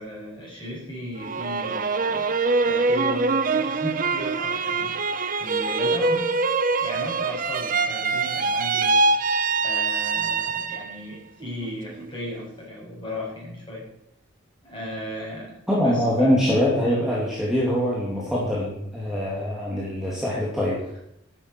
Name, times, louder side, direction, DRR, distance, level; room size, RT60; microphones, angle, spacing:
voice 1, 0.0-2.3 2.6-6.4 6.8-9.0 9.6-13.9 14.6-16.4 16.8-17.0, left 1 dB, 25° left, -3 dB, 6.7 m, -36 dB
sound 1, 1.2-11.0 11.4-12.1, right 3 dB, 40° right, 0.8 m, -24 dB
voice 2, 15.7-20.8, equal, ahead, -6 dB, 2.7 m, -23 dB
10.5 x 8.0 x 9.2 m, 0.79 s
head